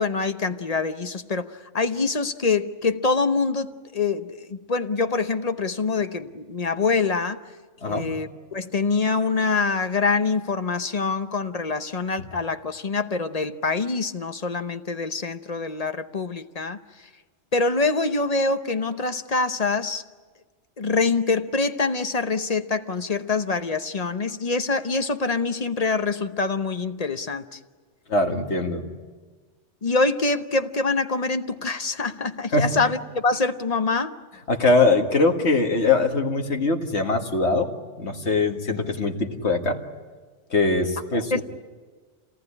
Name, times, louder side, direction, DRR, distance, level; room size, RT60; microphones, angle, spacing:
voice 1, 0.0-7.4 7.9-16.8 17.5-20.0 20.8-27.6 29.8-34.2 41.3-41.4, left 4 dB, 35° left, 9 dB, 0.9 m, -25 dB
voice 2, 7.8-8.1 28.1-28.9 32.5-32.9 34.5-37.7 38.0-39.8 40.5-41.4, left 3 dB, 65° left, 3 dB, 2.1 m, -22 dB
27.5 x 19.0 x 10.0 m, 1.4 s
omnidirectional pair, 1.2 m